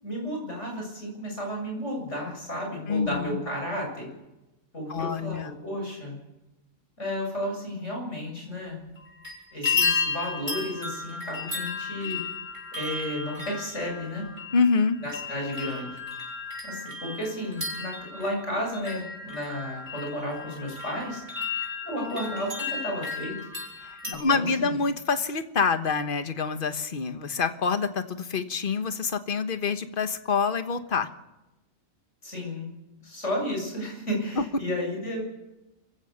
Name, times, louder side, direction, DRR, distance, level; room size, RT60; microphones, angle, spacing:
voice 1, 0.0-4.1 4.7-6.2 7.0-8.8 9.5-12.2 12.7-14.3 15.0-16.0 16.6-21.2 21.8-23.4 24.0-24.8 32.2-32.7 33.0-35.2, left 1 dB, 60° left, 1 dB, 7.7 m, -33 dB
voice 2, 2.9-3.4 4.9-5.5 14.5-15.0 23.8-31.1 34.4-34.5, left 5 dB, 40° left, 9 dB, 1.4 m, -26 dB
sound 1, 9.0-9.3 9.6-24.1, left 4 dB, 35° right, 7.1 m, -33 dB
27.0 x 15.5 x 6.7 m, 0.97 s
omnidirectional pair, 1.4 m